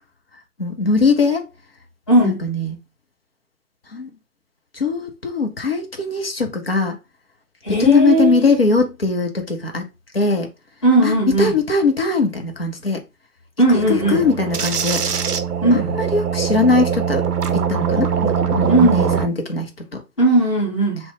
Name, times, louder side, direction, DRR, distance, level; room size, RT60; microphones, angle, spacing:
voice 1, 0.6-1.5 2.2-2.8 3.9-4.1 4.7-7.0 7.7-9.9 10.1-10.5 11.0-13.0 13.9-15.0 15.7-17.2 17.5-20.0, left 3 dB, 40° left, 0.6 m, -20 dB
voice 2, 2.1-2.4 7.6-8.5 10.8-11.5 13.6-14.2 15.6-16.0 18.7-19.0 20.2-21.0, right 2 dB, 20° left, 1.1 m, -17 dB
sound 1, 13.7-19.3, right 7 dB, 75° right, 0.6 m, -22 dB
2.9 x 2.0 x 3.0 m
figure-of-eight pair, 150°, 47 cm